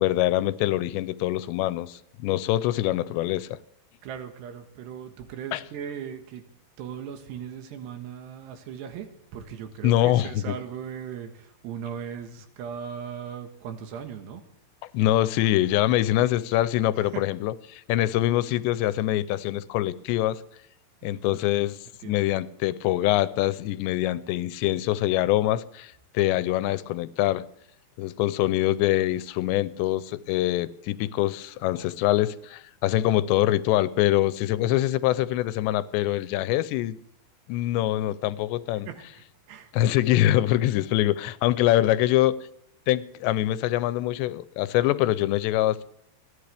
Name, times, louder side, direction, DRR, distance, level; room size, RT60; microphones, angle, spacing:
voice 1, 0.0-3.6 5.5-5.6 9.8-10.3 14.9-20.4 21.0-21.8 22.1-27.4 28.0-37.0 37.5-38.9 39.7-42.4 42.9-45.8, left 14 dB, 90° left, 2.9 m, -24 dB
voice 2, 4.0-6.4 6.8-14.4 17.0-17.2 21.0-21.4 22.0-22.3 38.7-39.2 39.5-39.9, right 8 dB, 80° right, 3.6 m, -38 dB
30.0 x 11.0 x 3.4 m
omnidirectional pair, 4.9 m